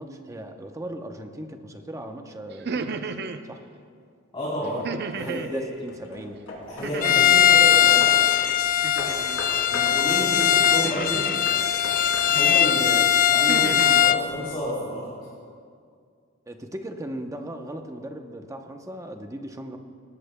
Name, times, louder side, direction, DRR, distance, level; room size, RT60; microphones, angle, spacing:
voice 1, 0.0-3.2 3.4-3.6 4.6-6.4 12.8-13.0 16.5-19.8, right 1 dB, 15° right, 5 dB, 0.7 m, -37 dB
sound 1, 2.5-3.4 4.8-5.5 6.8-7.5 8.8-9.4 10.8-11.5 12.3-12.7 13.2-14.0, right 4 dB, 55° right, 0.6 m, -33 dB
voice 2, 4.3-4.8 5.1-5.6 6.7-8.1 9.3-11.2 12.3-13.0 13.3-15.1, equal, 25° left, -10 dB, 3.7 m, -31 dB
Hammer / Wood, 4.8-5.2 5.9-8.3 9.0-12.6, left 1 dB, 75° left, 2.8 m, -38 dB
Bowed string instrument, 7.0-14.3, left 9 dB, 40° left, 0.3 m, -20 dB
18.5 x 18.0 x 2.2 m, 2.2 s
head